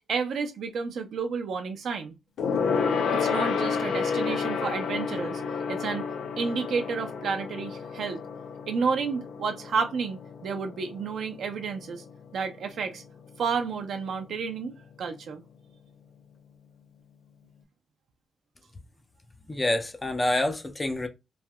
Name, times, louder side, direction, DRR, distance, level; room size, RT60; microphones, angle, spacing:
voice 1, 0.1-2.1 3.1-5.4 5.7-6.0 6.4-8.2 8.7-12.0 12.3-13.0 13.4-14.7 15.0-15.4, right 5 dB, 65° right, 0.5 m, -31 dB
Gong, 2.4-12.1 12.4-12.7 13.0-13.1, left 5 dB, 80° left, 0.6 m, -30 dB
voice 2, 19.5-21.1, left 1 dB, 15° left, 0.4 m, -27 dB
3.2 x 2.7 x 2.2 m
wide cardioid pair, 150°, 0 cm